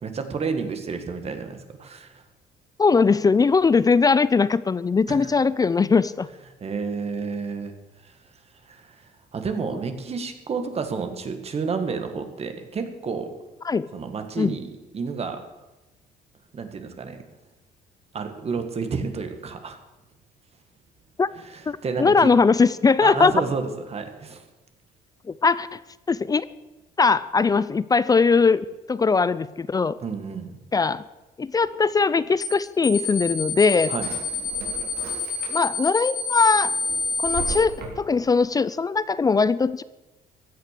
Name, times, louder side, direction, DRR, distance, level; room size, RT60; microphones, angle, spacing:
voice 1, 0.0-2.2 5.1-5.3 6.6-7.7 8.0-8.2 8.6-13.4 13.9-15.4 16.5-17.2 18.1-19.8 21.3-22.3 23.0-24.4 30.0-30.6 33.9-34.1, right 5 dB, 35° right, 7 dB, 1.9 m, -30 dB
voice 2, 2.8-6.3 13.6-13.9 14.4-14.5 21.2-21.3 21.7-23.3 25.4-25.8 26.1-26.5 27.0-30.0 30.7-31.0 31.4-33.9 35.5-36.7 37.2-39.8, left 4 dB, 20° left, 17 dB, 0.5 m, -20 dB
sound 1, 32.4-32.6 32.8-37.6, left 4 dB, 75° left, 3.3 m, -27 dB
Drawer open or close, 33.3-35.9 36.3-38.3, right 4 dB, 70° right, 4.0 m, -38 dB
16.0 x 10.5 x 6.7 m, 1.0 s
cardioid pair, 110°, 17 cm